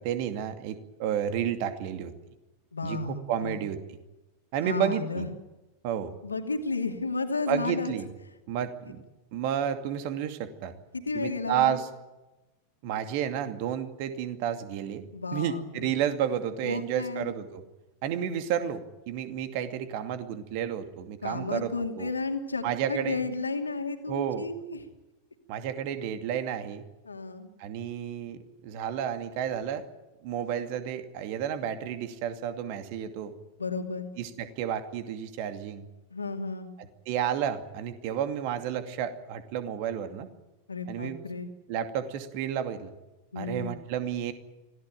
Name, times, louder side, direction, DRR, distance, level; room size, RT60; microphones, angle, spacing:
voice 1, 0.0-2.1 2.8-3.8 4.5-5.2 5.8-6.1 7.5-8.1 8.5-9.0 9.3-10.7 11.1-11.9 12.8-15.0 15.3-17.6 18.0-22.1 22.6-23.2 24.1-24.5 25.5-26.9 27.6-29.8 30.2-33.3 34.2-35.9 36.8-40.3 40.9-41.2 41.7-42.9 43.4-44.3, right 9 dB, 45° right, 8 dB, 2.4 m, -31 dB
voice 2, 2.7-3.6 4.6-5.3 6.2-7.9 10.9-11.8 15.1-15.9 16.6-17.4 21.2-24.8 27.0-27.5 33.6-34.1 36.1-36.7 40.7-41.5 43.3-43.7, left 3 dB, 75° left, 5 dB, 2.7 m, -33 dB
25.5 x 17.0 x 9.1 m, 1.0 s
figure-of-eight pair, 90°, 0 cm